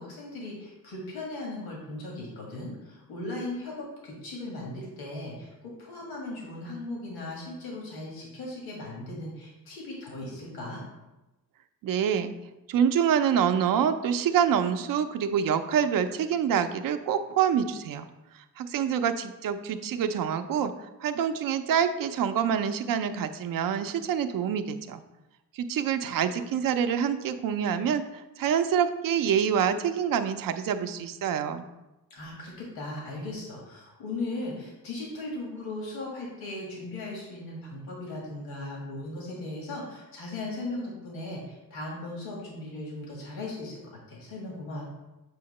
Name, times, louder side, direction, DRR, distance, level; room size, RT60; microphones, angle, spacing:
voice 1, 0.0-10.8 32.1-44.8, left 2 dB, 90° left, -3 dB, 1.7 m, -38 dB
voice 2, 11.8-12.3 12.7-18.1 18.6-20.7 21.0-25.0 25.5-31.6, right 8 dB, 70° right, 9 dB, 0.5 m, -26 dB
7.6 x 2.8 x 5.3 m, 1.0 s
cardioid pair, 140°, 36 cm